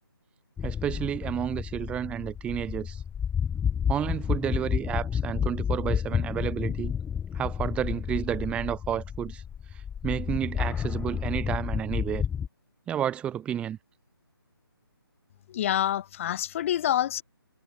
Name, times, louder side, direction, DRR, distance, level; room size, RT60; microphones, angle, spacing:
sound 1, 0.6-12.5, left 8 dB, 10° left, 3.2 m, -30 dB
voice 1, 0.6-3.0 3.9-6.9 7.3-9.4 10.0-12.2 12.9-13.8, right 10 dB, 10° right, 1.3 m, -31 dB
voice 2, 15.5-17.2, left 11 dB, 35° left, 4.3 m, -27 dB
figure-of-eight pair, 150°, 13 cm